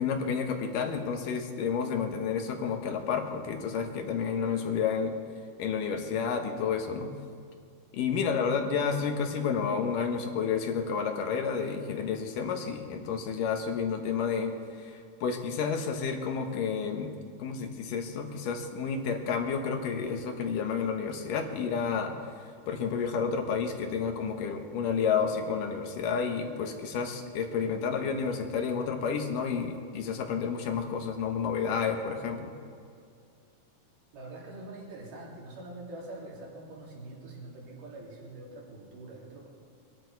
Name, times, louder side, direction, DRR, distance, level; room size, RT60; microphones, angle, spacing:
voice 1, 0.0-5.1 5.6-7.1 7.9-14.5 14.8-17.1 17.4-22.2 22.7-32.5, left 6 dB, 75° left, 4 dB, 2.7 m, -30 dB
voice 2, 34.1-39.5, right 2 dB, 70° right, -3 dB, 4.2 m, -44 dB
23.0 x 10.5 x 4.6 m, 2.4 s
omnidirectional pair, 4.0 m